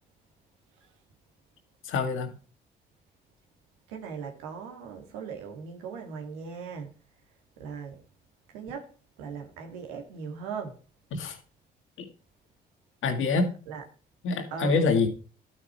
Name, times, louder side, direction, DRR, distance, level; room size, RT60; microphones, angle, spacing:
voice 1, 1.8-2.3 11.1-11.4 12.0-12.1 13.0-13.6 14.2-15.1, left 4 dB, 70° left, 2.1 m, -26 dB
voice 2, 3.9-6.9 7.6-8.0 8.5-10.8 13.7-13.8 14.5-14.9, right 6 dB, 90° right, 1.9 m, -39 dB
12.0 x 6.0 x 4.5 m
hypercardioid pair, 50°, 21 cm